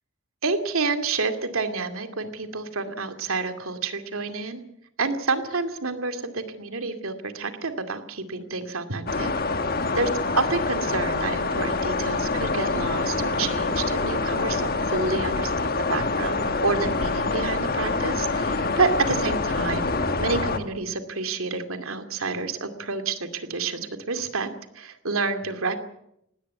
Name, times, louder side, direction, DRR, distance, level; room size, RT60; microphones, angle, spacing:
voice 1, 0.4-4.6 5.0-9.3 9.9-10.1 10.4-19.9 20.2-24.5 24.7-25.8, right 4 dB, 85° right, 8 dB, 2.4 m, -29 dB
sound 1, 9.1-20.6, left 3 dB, 45° left, 1.5 m, -26 dB
19.5 x 17.0 x 9.4 m, 0.79 s
head